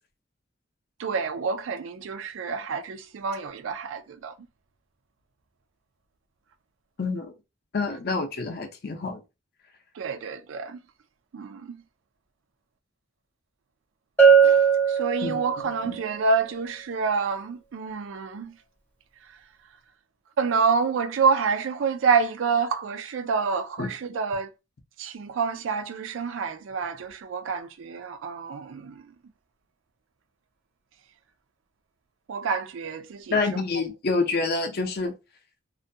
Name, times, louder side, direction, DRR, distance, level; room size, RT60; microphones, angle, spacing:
voice 1, 1.0-4.3 10.0-10.8 11.3-11.8 14.4-14.6 14.9-18.5 20.4-24.5 25.0-29.1 32.3-33.4, right 5 dB, 85° right, 0.4 m, -27 dB
voice 2, 7.0-7.3 7.7-9.2 15.2-15.5 15.8-16.0 23.8-23.9 33.3-35.1, left 3 dB, 55° left, 0.5 m, -27 dB
Bell, 14.2-15.8, right 6 dB, 10° left, 0.6 m, -18 dB
2.4 x 2.2 x 2.6 m
head